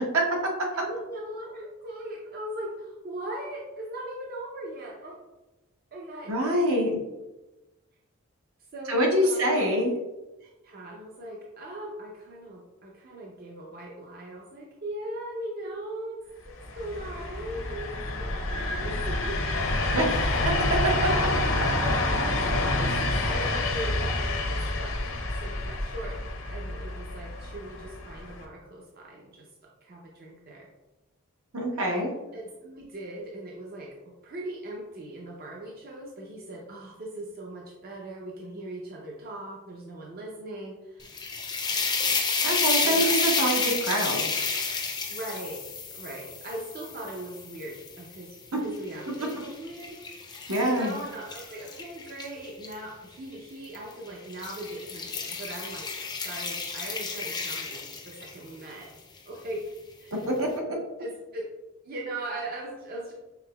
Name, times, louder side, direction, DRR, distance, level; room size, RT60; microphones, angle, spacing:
voice 1, 0.7-5.2 5.9-6.3 8.7-9.5 10.4-19.4 21.3-26.2 26.5-29.5 29.8-30.7 32.3-41.4 41.8-42.0 42.8-43.1 45.1-45.6 45.9-50.0 50.6-55.9 56.2-58.9 59.3-59.7 60.0-60.3 61.0-61.5 61.8-63.1, right 1 dB, 45° right, -2 dB, 0.6 m, -39 dB
voice 2, 6.3-7.0 8.9-9.9 19.9-20.4 21.0-21.1 31.5-32.1 42.4-44.3 48.5-48.6 50.5-50.9 60.2-60.5, right 1 dB, 70° right, 0 dB, 0.9 m, -25 dB
sound 1, 16.5-28.4, left 2 dB, 60° left, 0.7 m, -28 dB
sound 2, 41.0-48.2 48.8-52.7 53.6-53.9 54.3-58.5, left 4 dB, 20° left, 0.5 m, -31 dB
5.8 x 3.6 x 2.2 m, 1.1 s
head